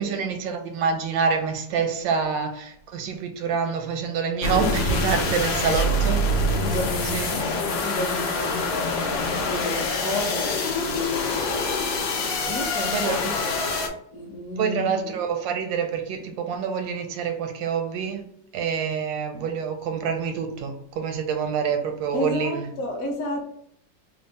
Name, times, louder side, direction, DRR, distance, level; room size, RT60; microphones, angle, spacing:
voice 1, 0.0-6.8 7.0-7.6 12.3-12.6 12.9-13.5 14.6-22.7, right 6 dB, 85° right, 1.4 m, -27 dB
sound 1, 4.4-13.9, left 2 dB, 85° left, 1.4 m, -25 dB
voice 2, 5.4-5.8 6.6-7.4 7.8-13.1 14.1-15.2 22.1-23.4, left 1 dB, 55° left, 1.1 m, -32 dB
3.5 x 2.0 x 4.0 m
omnidirectional pair, 2.0 m